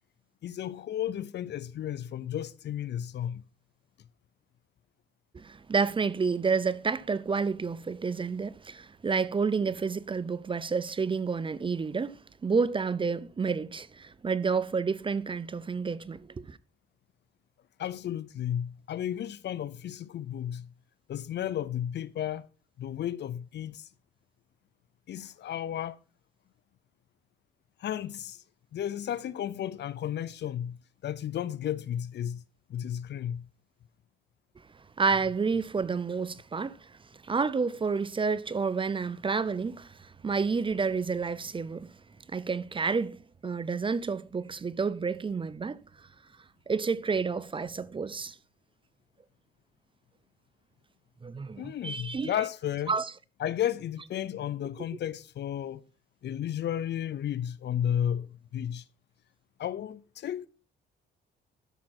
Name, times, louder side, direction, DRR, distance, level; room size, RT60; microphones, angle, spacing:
voice 1, 0.4-3.4 17.8-20.7 21.1-22.5 22.8-23.9 25.1-26.0 27.8-28.4 28.7-30.8 31.0-32.4 32.7-33.5 51.6-52.9 53.4-55.8 56.2-58.8 59.6-60.5, left 10 dB, 60° left, 0.7 m, -33 dB
voice 2, 5.3-16.6 35.0-37.0 37.2-41.9 42.3-43.2 43.4-46.1 46.7-48.4 51.2-52.4 52.9-53.1, right 5 dB, 25° right, 0.6 m, -30 dB
12.0 x 5.9 x 4.3 m
cardioid pair, 90°, 20 cm